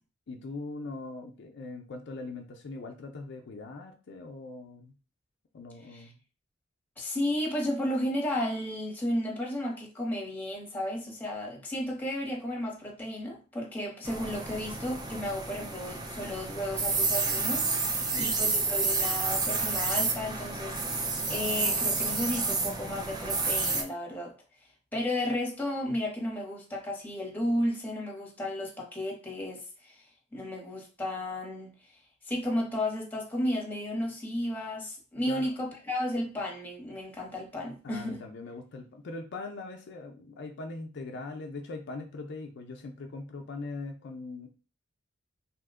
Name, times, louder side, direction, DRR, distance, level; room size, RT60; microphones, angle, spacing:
voice 1, 0.3-5.0 5.5-6.2 18.0-18.3 35.3-35.5 37.8-44.5, left 3 dB, 60° left, 0.4 m, -41 dB
voice 2, 7.0-21.0 21.3-24.3 24.9-30.0 30.3-31.7 32.3-38.2, left 1 dB, 10° left, 0.9 m, -33 dB
sound 1, 14.0-23.8, right 3 dB, 20° right, 0.4 m, -30 dB
2.8 x 2.1 x 3.4 m
head